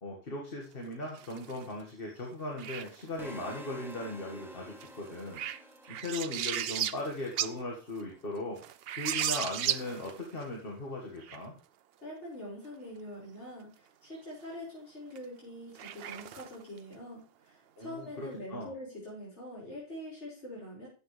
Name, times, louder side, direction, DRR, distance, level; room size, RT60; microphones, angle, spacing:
voice 1, 0.0-8.6 9.0-11.5 17.8-18.7, left 2 dB, 55° left, -1 dB, 2.0 m, -38 dB
sound 1, 1.0-1.7 2.6-3.2 4.8-7.6 8.0-8.1 8.6-10.4 11.2-11.4 15.2-15.3 15.8-16.8, right 10 dB, 65° right, 0.8 m, -35 dB
sound 2, 3.2-7.2, equal, ahead, 1.1 m, -49 dB
voice 2, 12.0-20.9, left 1 dB, 85° left, -7 dB, 5.3 m, -44 dB
12.5 x 7.9 x 3.3 m, 0.38 s
omnidirectional pair, 1.1 m